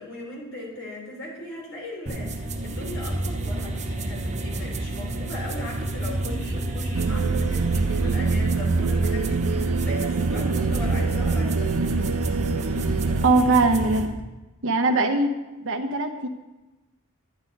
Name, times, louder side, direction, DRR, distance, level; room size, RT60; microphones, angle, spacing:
voice 1, 0.0-11.7, left 1 dB, 60° left, -2 dB, 3.7 m, -38 dB
sound 1, 2.1-14.1, right 1 dB, 30° right, 1.0 m, -30 dB
sound 2, 6.9-13.3, right 4 dB, 90° right, 0.5 m, -25 dB
voice 2, 13.2-14.1 14.6-16.3, right 3 dB, 65° right, 4 dB, 1.1 m, -21 dB
12.0 x 9.4 x 4.0 m, 1.1 s
head